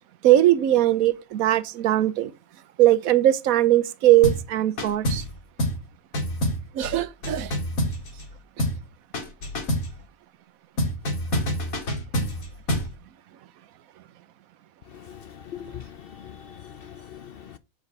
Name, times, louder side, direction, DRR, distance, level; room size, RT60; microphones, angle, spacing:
voice 1, 0.2-2.3 2.8-5.2 6.7-7.5, right 14 dB, 90° right, 1.1 m, -20 dB
sound 1, 4.2-4.5 4.8-5.3 5.6-5.9 6.1-8.3 8.6-8.9 9.1-9.9 10.8-12.9, equal, 85° left, 2.4 m, -27 dB
voice 2, 15.5-15.9 16.2-17.6, left 9 dB, 60° left, 0.6 m, -41 dB
8.1 x 4.8 x 5.4 m
omnidirectional pair, 1.4 m